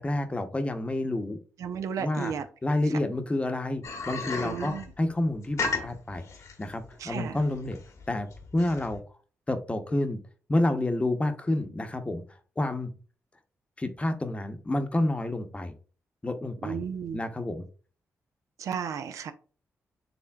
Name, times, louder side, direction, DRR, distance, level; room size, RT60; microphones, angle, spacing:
voice 1, 0.0-1.4 2.0-2.3 2.6-6.2 6.6-7.8 8.1-9.0 9.5-10.2 10.5-12.2 12.6-12.9 13.8-15.7 16.2-16.8 17.1-17.7, left 1 dB, 20° left, 7 dB, 0.8 m, -29 dB
voice 2, 1.6-2.4 4.4-4.9 7.0-7.4 16.6-17.2 18.6-19.3, right 7 dB, 80° right, 9 dB, 0.5 m, -33 dB
sound 1, 3.8-9.0, left 4 dB, 70° left, 1.1 m, -35 dB
7.0 x 3.2 x 2.3 m, 0.39 s
cardioid pair, 70°, 5 cm